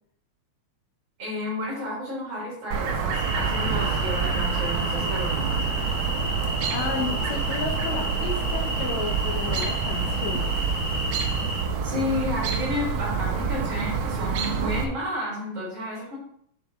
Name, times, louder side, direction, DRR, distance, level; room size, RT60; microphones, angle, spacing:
voice 1, 1.2-5.6 11.8-16.2, left 1 dB, 40° right, -6 dB, 4.3 m, -31 dB
Chirp tweet, 2.7-14.8, right 5 dB, 75° right, 2.1 m, -27 dB
sound 1, 3.1-11.6, left 1 dB, 30° left, 1.9 m, -32 dB
voice 2, 6.7-10.6 11.7-11.8, left 4 dB, 75° left, 3 dB, 2.1 m, -32 dB
8.1 x 5.8 x 3.6 m, 0.68 s
omnidirectional pair, 3.4 m